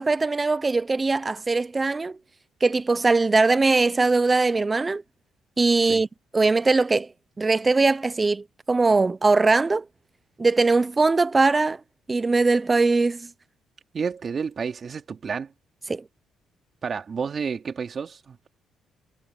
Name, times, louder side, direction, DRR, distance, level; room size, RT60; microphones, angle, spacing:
voice 1, 0.0-2.2 2.6-5.0 5.6-6.1 6.3-7.1 7.4-9.8 10.4-11.8 12.1-13.3 15.9-16.0, right 3 dB, 20° right, 0.7 m, -21 dB
voice 2, 13.9-15.5 16.8-18.5, right 6 dB, 40° right, 2.8 m, -30 dB
cardioid pair, 105°, 0 cm